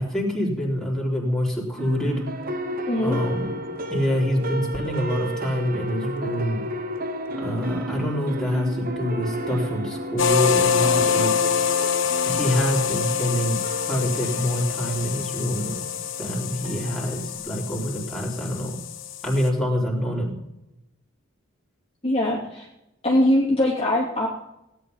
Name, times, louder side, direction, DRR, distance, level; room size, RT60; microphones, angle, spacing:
voice 1, 0.0-2.2 3.0-3.5 3.9-6.6 7.4-11.3 12.2-13.6 13.9-15.8 16.2-18.8 19.2-20.3, equal, ahead, -4 dB, 3.8 m, -26 dB
sound 1, 1.8-17.4, right 1 dB, 45° right, 1.2 m, -33 dB
voice 2, 2.9-3.2 22.0-22.7 23.0-24.3, left 1 dB, 25° left, -4 dB, 2.8 m, -21 dB
sound 2, 10.2-19.5, left 7 dB, 60° left, 1.2 m, -25 dB
17.5 x 10.5 x 5.6 m, 0.88 s
head